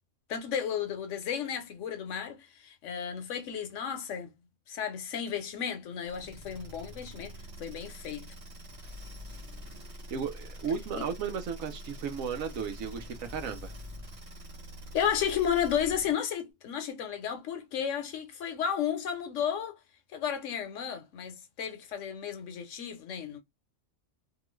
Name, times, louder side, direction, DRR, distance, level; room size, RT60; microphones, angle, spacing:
voice 1, 0.3-4.3 4.7-7.3 7.6-8.3 10.9-11.1 14.9-19.8 20.1-23.4, left 8 dB, 70° left, 0.9 m, -33 dB
sound 1, 6.0-16.2, equal, 35° right, 1.0 m, -45 dB
voice 2, 10.1-13.7, right 6 dB, 80° right, 1.1 m, -35 dB
2.9 x 2.3 x 3.0 m
omnidirectional pair, 1.4 m